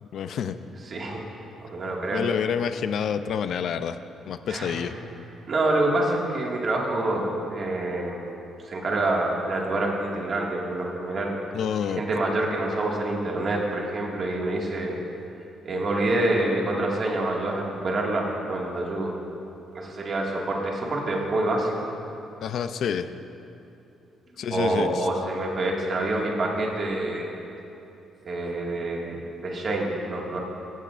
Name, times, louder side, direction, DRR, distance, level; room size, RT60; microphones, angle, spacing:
voice 1, 0.0-0.6 2.1-4.0 4.3-5.0 11.5-12.0 22.4-23.1 24.4-25.1, left 7 dB, 55° left, 10 dB, 0.4 m, -28 dB
voice 2, 0.9-1.2 1.6-2.2 4.5-4.8 5.5-8.3 8.7-11.3 11.9-15.0 15.6-19.1 19.7-21.7 24.5-27.3 28.2-30.4, right 2 dB, 35° right, -2 dB, 1.9 m, -27 dB
16.5 x 14.5 x 2.5 m, 2.7 s
cardioid pair, 170°, 0 cm